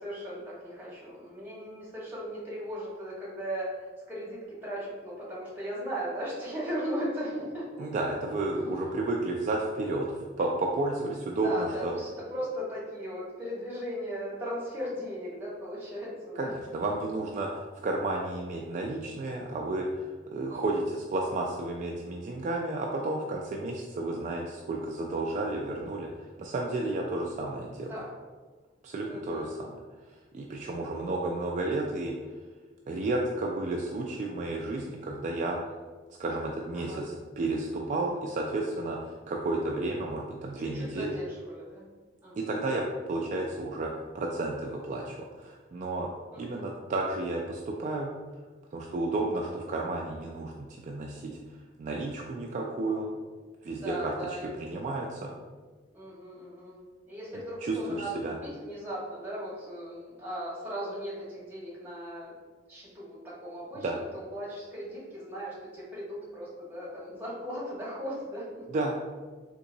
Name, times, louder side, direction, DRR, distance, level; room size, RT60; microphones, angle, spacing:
voice 1, 0.0-7.9 8.8-9.0 11.4-16.5 20.5-20.6 27.9-28.1 29.1-29.6 36.7-37.0 40.6-41.8 42.2-42.5 46.3-46.7 53.8-54.7 55.9-62.3 62.7-68.6, equal, 10° right, -7 dB, 1.3 m, -37 dB
voice 2, 7.8-11.9 16.4-26.1 26.4-27.9 28.8-29.8 30.3-32.1 32.9-35.6 36.2-41.2 42.4-46.1 46.4-48.1 48.7-51.4 51.8-53.1 53.6-54.1 54.6-55.3 57.6-58.3 63.8-63.9 68.7-68.9, right 2 dB, 45° right, -1 dB, 0.3 m, -32 dB
3.7 x 2.9 x 2.6 m, 1.4 s
head